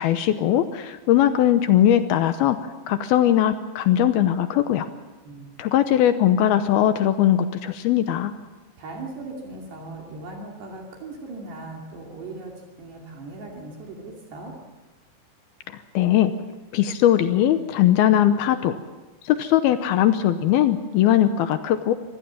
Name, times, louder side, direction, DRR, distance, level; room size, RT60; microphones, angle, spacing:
voice 1, 0.0-2.6 2.9-4.9 5.6-8.3 15.9-16.3 16.7-18.8 19.2-21.9, left 11 dB, 80° left, 10 dB, 2.3 m, -20 dB
voice 2, 5.3-5.7 8.8-12.5 12.8-14.5, right 2 dB, 65° right, 0 dB, 4.6 m, -38 dB
26.0 x 17.5 x 7.3 m, 1.2 s
omnidirectional pair, 5.3 m